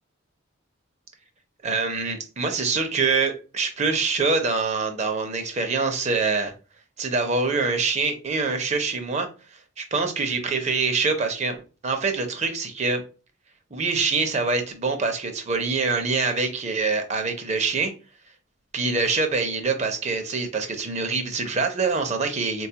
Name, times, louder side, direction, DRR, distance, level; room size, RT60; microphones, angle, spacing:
voice 1, 1.6-6.5 7.0-9.3 9.8-13.0 13.7-17.9 18.7-22.7, right 4 dB, 35° right, 0.6 m, -25 dB
3.8 x 2.3 x 2.8 m
head